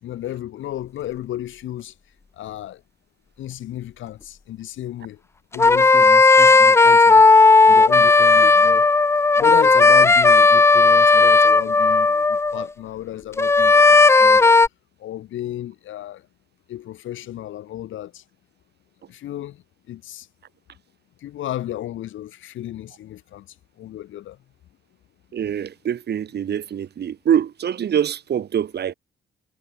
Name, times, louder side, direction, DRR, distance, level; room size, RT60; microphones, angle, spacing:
voice 1, 0.0-1.9 2.4-2.8 3.4-5.2 5.5-7.2 7.6-8.9 9.4-14.5 15.0-16.3 16.7-18.2 19.1-20.3 21.2-24.4, left 13 dB, 80° left, 3.8 m, -33 dB
sound 1, 5.5-12.7 13.4-14.7, left 3 dB, 15° left, 0.3 m, -13 dB
voice 2, 25.3-28.9, right 9 dB, 55° right, 2.0 m, -24 dB
cardioid pair, 90°, 20 cm